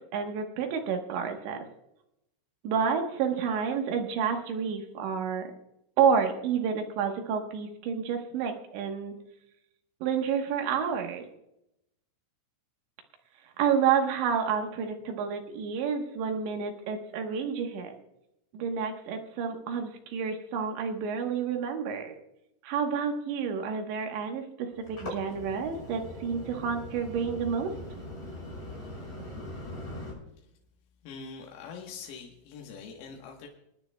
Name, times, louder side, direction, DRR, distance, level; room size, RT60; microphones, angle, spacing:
voice 1, 0.1-1.6 2.6-5.5 6.0-9.1 10.0-11.3 13.6-17.9 18.5-22.1 22.6-27.7, right 6 dB, 70° right, 4 dB, 3.1 m, -29 dB
sound 1, 24.7-30.1, left 1 dB, 20° left, 5.4 m, -41 dB
voice 2, 31.0-33.5, left 5 dB, 85° left, 0 dB, 4.0 m, -43 dB
29.0 x 9.7 x 2.2 m, 0.84 s
omnidirectional pair, 6.0 m